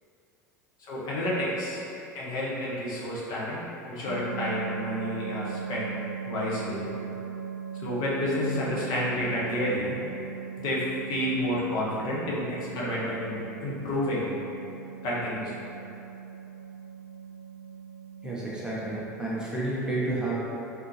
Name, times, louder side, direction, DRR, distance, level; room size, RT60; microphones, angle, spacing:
voice 1, 0.9-1.8 2.1-5.9 6.3-6.9 7.8-10.0 10.6-14.3 15.0-15.5, left 1 dB, 45° left, -6 dB, 0.8 m, -30 dB
sound 1, 4.0-19.3, right 6 dB, 60° right, 1.0 m, -39 dB
voice 2, 18.2-20.4, right 2 dB, 5° right, -7 dB, 0.7 m, -30 dB
3.5 x 2.6 x 2.9 m, 2.9 s
figure-of-eight pair, 75°, 10 cm